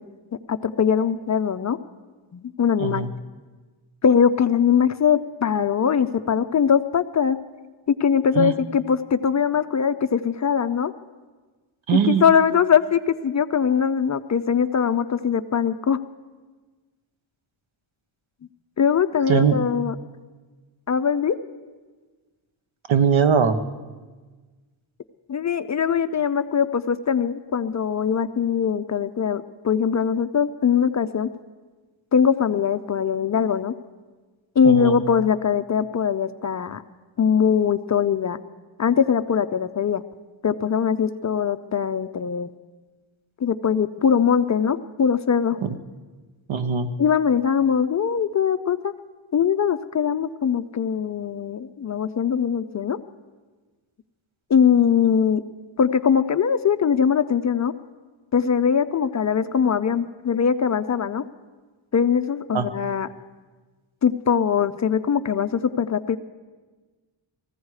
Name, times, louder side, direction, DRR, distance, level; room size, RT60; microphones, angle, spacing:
voice 1, 0.5-1.8 2.3-3.1 4.0-7.4 7.9-10.9 12.1-16.0 18.8-19.9 20.9-21.4 25.3-31.3 32.1-33.7 34.6-36.8 37.2-38.4 38.8-40.0 40.4-42.5 43.4-45.6 47.0-48.9 49.3-53.0 54.5-55.4 55.8-57.7 58.3-61.2 61.9-63.1 64.0-66.2, left 7 dB, 40° left, 10 dB, 0.4 m, -21 dB
voice 2, 11.9-12.2 19.3-19.6 22.9-23.6 34.6-35.0 45.6-45.8 46.5-46.9 62.5-62.7, right 7 dB, 70° right, 10 dB, 1.0 m, -20 dB
20.0 x 15.0 x 4.8 m, 1.4 s
wide cardioid pair, 150°, 48 cm